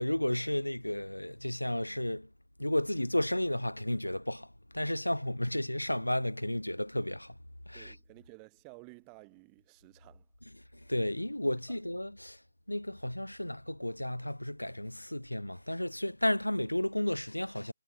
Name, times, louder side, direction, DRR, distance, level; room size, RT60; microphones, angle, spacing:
voice 1, 0.0-2.3 2.6-7.4 7.7-8.0 10.7-17.7, left 1 dB, 90° left, 1.0 m, -33 dB
voice 2, 7.7-10.3, right 40 dB or more, 15° right, 2.0 m, -54 dB
figure-of-eight pair, 150°, 0 cm